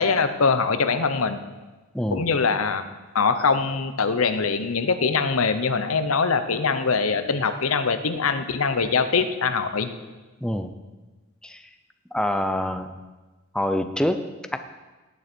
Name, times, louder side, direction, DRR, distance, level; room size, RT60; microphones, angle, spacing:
voice 1, 0.0-1.4 2.1-2.8 3.1-9.9, left 5 dB, 85° left, 9 dB, 0.8 m, -23 dB
voice 2, 1.9-2.3 10.4-10.7 11.4-11.7 12.1-13.0 13.5-14.6, left 1 dB, 5° left, 8 dB, 0.6 m, -26 dB
17.5 x 9.4 x 4.5 m, 1.2 s
head